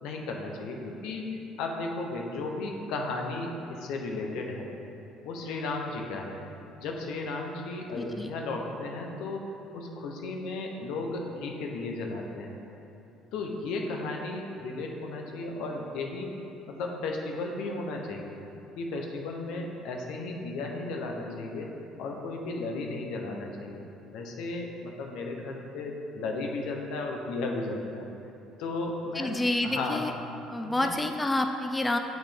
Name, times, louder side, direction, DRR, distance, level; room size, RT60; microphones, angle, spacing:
voice 1, 0.0-4.7 5.2-6.4 6.8-9.5 9.7-12.6 13.3-16.4 16.7-18.4 18.8-21.7 22.0-23.8 24.1-28.1 28.6-29.4 29.6-30.0 30.6-30.9, left 3 dB, 75° left, 1 dB, 0.8 m, -34 dB
voice 2, 7.9-8.3 29.1-30.1 30.5-32.0, left 2 dB, 15° left, 5 dB, 0.4 m, -28 dB
7.2 x 4.0 x 5.1 m, 2.8 s
supercardioid pair, 90°, 0 cm